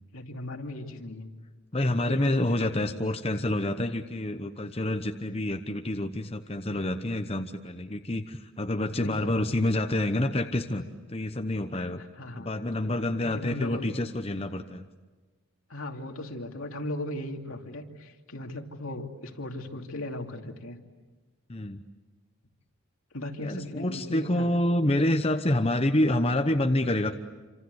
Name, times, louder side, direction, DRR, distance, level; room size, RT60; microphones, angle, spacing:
voice 1, 0.1-1.3 2.0-3.0 8.9-9.7 11.8-12.5 13.3-13.9 15.7-20.8 23.1-24.5, left 1 dB, 75° left, 3 dB, 2.7 m, -37 dB
voice 2, 1.7-10.8 11.1-12.0 12.4-14.9 21.5-21.8 23.4-27.1, left 1 dB, 25° left, 6 dB, 1.0 m, -27 dB
28.0 x 26.5 x 8.2 m, 1.3 s
head